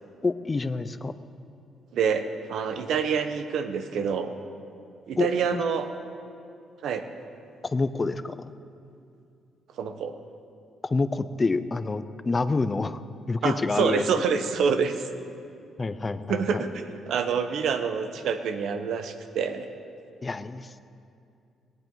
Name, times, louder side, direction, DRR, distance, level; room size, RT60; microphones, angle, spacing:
voice 1, 0.2-1.1 5.2-5.6 7.6-8.4 10.8-13.0 13.3-14.1 15.8-16.6 20.2-20.9, left 3 dB, 25° left, 12 dB, 0.7 m, -27 dB
voice 2, 1.9-4.3 5.1-5.9 6.8-7.0 9.8-10.2 13.4-15.0 16.3-19.7, right 6 dB, 75° right, 8 dB, 1.1 m, -27 dB
19.5 x 18.0 x 4.0 m, 2.5 s
cardioid pair, 90°, 0 cm